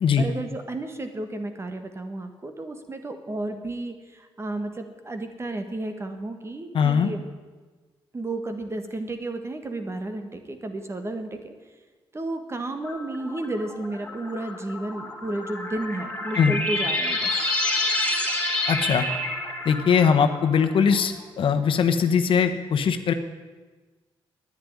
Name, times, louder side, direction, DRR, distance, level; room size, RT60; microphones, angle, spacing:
voice 1, 0.2-7.3 8.1-11.5 12.1-17.3, right 2 dB, 30° right, 7 dB, 1.6 m, -32 dB
voice 2, 6.7-7.1 16.4-16.5 18.7-19.1 19.6-23.1, left 6 dB, 65° left, 7 dB, 1.2 m, -21 dB
sound 1, 12.8-21.0, left 2 dB, 15° left, 3.4 m, -29 dB
10.5 x 9.8 x 9.8 m, 1.3 s
cardioid pair, 95°, 9 cm